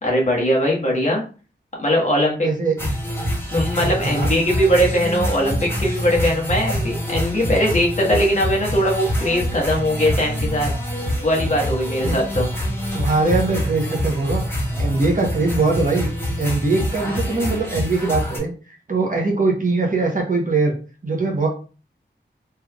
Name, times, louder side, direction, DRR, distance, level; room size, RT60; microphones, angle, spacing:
voice 1, 0.0-1.2 1.8-2.5 3.5-10.7 11.2-12.5, equal, 40° left, -2 dB, 1.3 m, -20 dB
voice 2, 2.4-2.8 4.0-4.3 12.0-12.2 12.9-14.4 14.8-16.1 16.4-18.5 18.9-20.7 21.0-21.5, right 3 dB, 45° right, 0 dB, 1.0 m, -21 dB
sound 1, 2.8-18.4, equal, 15° left, 1.6 m, -25 dB
3.4 x 3.3 x 2.3 m, 0.36 s
wide cardioid pair, 80°, 19 cm